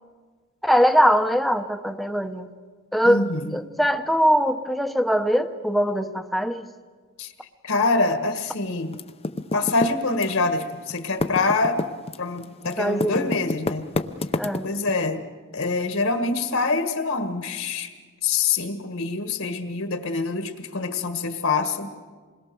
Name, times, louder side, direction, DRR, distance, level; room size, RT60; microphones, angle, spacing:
voice 1, 0.6-2.5 2.9-6.7 12.8-13.3 14.4-14.7, equal, ahead, 7 dB, 0.9 m, -22 dB
voice 2, 3.0-3.5 7.2-7.3 7.6-8.9 9.5-11.8 12.2-13.9 14.6-15.2 15.5-17.9 18.2-21.9, left 3 dB, 70° left, 7 dB, 1.6 m, -25 dB
Typing, 8.9-10.6 10.9-14.9, left 2 dB, 30° left, 0.7 m, -28 dB
27.0 x 21.0 x 6.9 m, 1.5 s
head